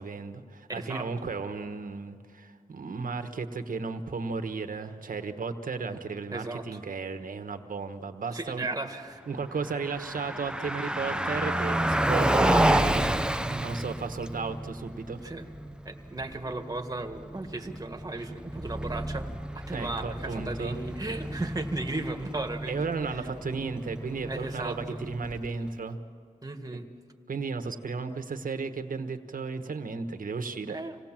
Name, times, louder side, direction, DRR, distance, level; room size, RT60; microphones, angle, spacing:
voice 1, 0.0-8.7 9.3-15.2 19.7-20.8 22.7-26.0 27.3-30.8, right 4 dB, 75° right, 8 dB, 1.3 m, -34 dB
voice 2, 0.7-1.0 6.3-6.6 8.3-9.2 15.2-15.5 15.8-19.3 19.7-22.9 24.3-25.0 26.4-26.9 30.7-31.0, right 2 dB, 25° right, 5 dB, 1.7 m, -35 dB
Car passing by, 9.6-25.7, right 1 dB, 5° right, 0.5 m, -30 dB
26.5 x 18.0 x 7.4 m, 2.3 s
wide cardioid pair, 95°, 14 cm